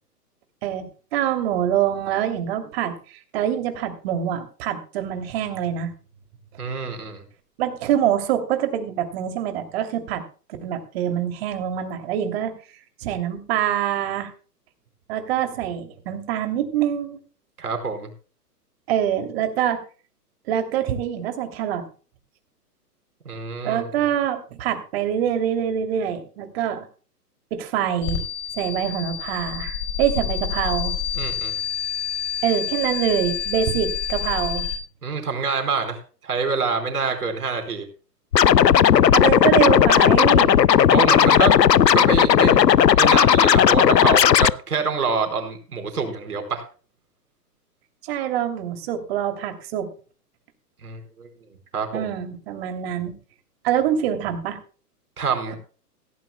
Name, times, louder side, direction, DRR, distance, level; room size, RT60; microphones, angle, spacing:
voice 1, 0.6-5.9 7.6-10.2 10.6-12.5 13.0-14.3 15.1-17.2 18.9-19.8 20.5-21.8 23.6-26.8 27.5-28.2 28.6-31.0 32.4-34.7 39.1-40.6 48.0-49.9 51.9-53.1 53.6-54.6, right 10 dB, 40° right, 6 dB, 3.0 m, -25 dB
voice 2, 6.6-7.2 17.6-18.1 23.2-24.1 31.1-31.5 35.0-37.8 40.9-41.5 41.9-42.6 43.0-46.6 50.8-51.3 51.7-52.1 55.2-55.6, right 4 dB, 65° right, 6 dB, 4.6 m, -26 dB
sound 1, 28.0-34.8, left 8 dB, 40° left, 4.6 m, -28 dB
Scratching (performance technique), 38.3-44.5, left 9 dB, 90° left, 0.6 m, -15 dB
17.0 x 17.0 x 2.2 m, 0.37 s
figure-of-eight pair, 115°, 48 cm